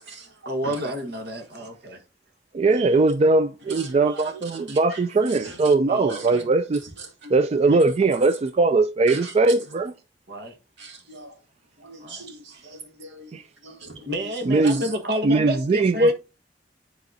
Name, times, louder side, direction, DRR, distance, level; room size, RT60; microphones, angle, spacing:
voice 1, 0.4-2.0 5.9-6.5 10.3-10.5 12.0-12.4 14.0-16.1, right 1 dB, 65° right, 1.4 m, -30 dB
voice 2, 2.5-6.8 7.3-9.9 13.3-13.4 14.5-14.8 15.2-16.1, right 3 dB, 35° right, 0.3 m, -20 dB
voice 3, 3.7-5.0 5.4-5.7 6.1-6.3 7.2-7.3 9.1-9.5 10.8-11.3 11.8-13.3 13.6-14.1 14.6-14.8, right 3 dB, 85° right, 2.2 m, -40 dB
10.5 x 4.1 x 2.7 m
head